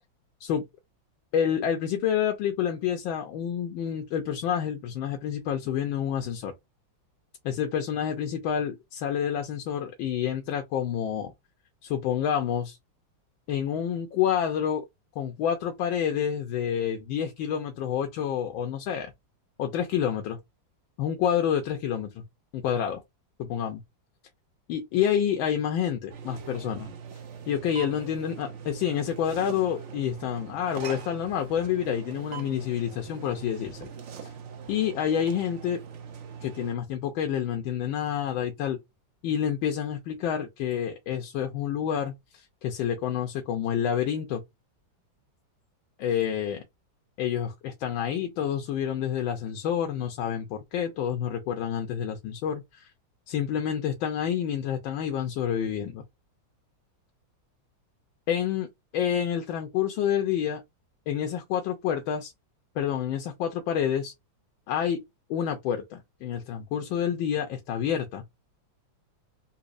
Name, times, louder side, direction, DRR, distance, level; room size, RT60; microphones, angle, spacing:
voice 1, 1.3-6.5 7.4-11.3 11.8-12.8 13.5-14.8 15.2-19.1 19.6-20.4 21.0-22.2 22.5-23.0 23.4-23.8 24.7-26.9 27.5-33.9 34.2-34.3 34.7-35.8 36.4-38.8 39.2-44.4 46.0-46.6 47.2-52.9 53.3-56.0 58.3-58.7 58.9-60.6 61.1-62.3 62.7-64.1 64.7-65.0 65.3-68.2, left 9 dB, 85° left, 1.4 m, -28 dB
sound 1, 26.1-36.7, right 7 dB, 70° right, 0.6 m, -42 dB
4.1 x 2.7 x 2.5 m
omnidirectional pair, 2.1 m